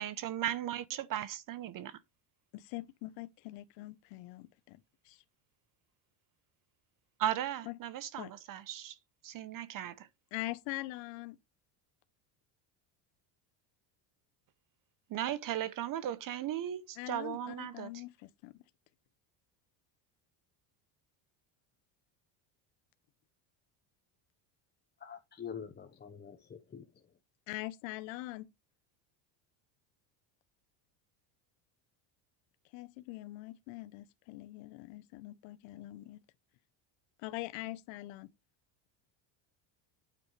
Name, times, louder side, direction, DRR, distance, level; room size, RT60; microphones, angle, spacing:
voice 1, 0.0-2.0 7.2-9.0 9.2-10.1 15.1-18.0, right 11 dB, 45° right, 0.8 m, -37 dB
voice 2, 2.5-5.2 7.7-7.8 8.2-8.3 10.3-11.4 17.0-18.5 27.5-28.5 32.7-36.2 37.2-38.3, left 19 dB, 70° left, 0.9 m, -43 dB
voice 3, 25.0-27.0, left 7 dB, 20° left, 1.0 m, -46 dB
9.1 x 8.4 x 3.2 m
cardioid pair, 130°, 47 cm